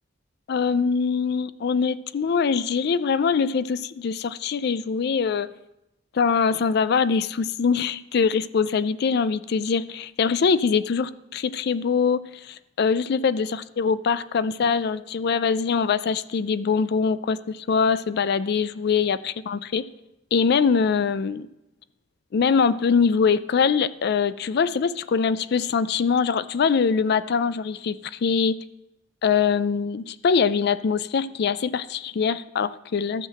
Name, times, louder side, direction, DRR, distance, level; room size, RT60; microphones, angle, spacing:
voice 1, 0.5-5.5 6.1-19.8 20.3-21.5 22.3-28.6 29.2-33.3, left 5 dB, 60° left, 15 dB, 0.4 m, -23 dB
13.0 x 5.7 x 7.5 m, 0.90 s
head